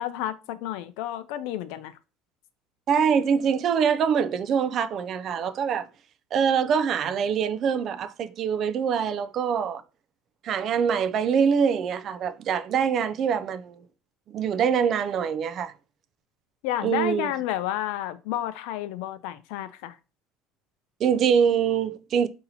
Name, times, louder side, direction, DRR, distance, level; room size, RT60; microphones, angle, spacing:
voice 1, 0.0-1.9 16.6-20.0, left 12 dB, 75° left, 0.4 m, -31 dB
voice 2, 2.9-5.9 6.3-9.8 10.4-13.8 14.3-15.7 16.8-17.3 21.0-22.3, right 7 dB, 35° right, 0.3 m, -24 dB
4.1 x 2.8 x 4.0 m
cardioid pair, 160°, 0 cm